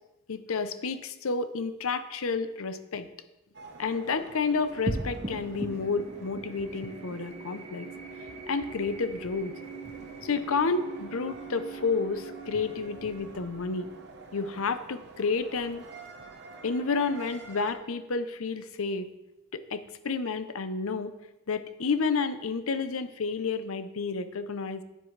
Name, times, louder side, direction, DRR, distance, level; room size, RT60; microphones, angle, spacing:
voice 1, 0.3-3.1 3.8-7.9 8.5-9.5 10.2-13.9 14.3-15.9 16.6-19.1 19.5-21.1 21.5-24.8, left 4 dB, 70° left, 11 dB, 0.6 m, -30 dB
sound 1, 3.5-17.7, right 3 dB, 50° right, 1.0 m, -48 dB
sound 2, 4.9-15.5, right 2 dB, 30° right, 0.8 m, -41 dB
10.0 x 8.2 x 3.3 m, 0.95 s
head